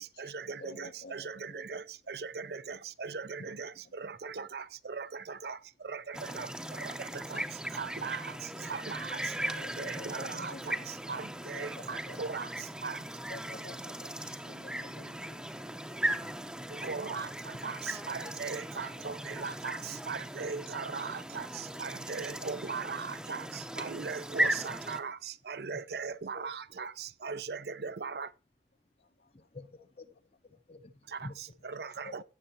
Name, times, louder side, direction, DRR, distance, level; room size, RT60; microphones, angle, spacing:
voice 1, 0.0-13.1 16.7-28.3 31.1-32.2, right 5 dB, 65° right, 0.5 m, -39 dB
voice 2, 0.6-1.6 3.5-3.6 6.1-6.4 9.4-11.0 11.5-12.2 13.3-15.4 22.3-22.5 29.2-29.3 32.0-32.2, left 2 dB, 65° left, 0.9 m, -49 dB
sound 1, 6.1-25.0, right 1 dB, 5° right, 0.7 m, -38 dB
voice 3, 29.3-30.1 30.4-31.3, left 2 dB, 35° left, 0.8 m, -48 dB
17.0 x 6.9 x 2.8 m
head